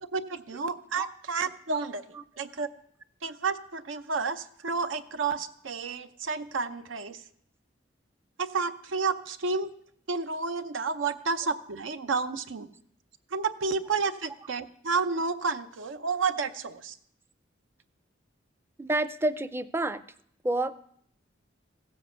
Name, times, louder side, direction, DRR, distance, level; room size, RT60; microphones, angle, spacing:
voice 1, 0.1-2.0 2.4-2.7 3.2-7.2 8.4-9.7 10.1-12.7 13.3-17.0, right 4 dB, 85° right, 9 dB, 0.7 m, -30 dB
voice 2, 18.8-20.0 20.4-20.7, right 2 dB, 10° right, 13 dB, 0.4 m, -28 dB
15.5 x 7.5 x 6.8 m, 0.67 s
head